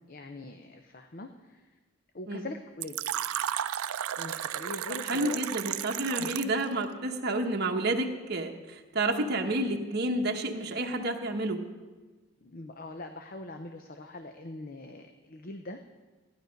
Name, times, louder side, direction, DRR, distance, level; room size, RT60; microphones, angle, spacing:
voice 1, 0.1-1.7 2.1-3.1 4.2-5.4 6.2-6.3 12.4-15.8, left 2 dB, 40° left, 6 dB, 0.6 m, -42 dB
Fill (with liquid), 2.8-6.6, right 10 dB, 85° right, 0.4 m, -33 dB
voice 2, 5.0-11.6, right 2 dB, 50° right, 3 dB, 1.0 m, -30 dB
15.0 x 10.5 x 5.2 m, 1.3 s
head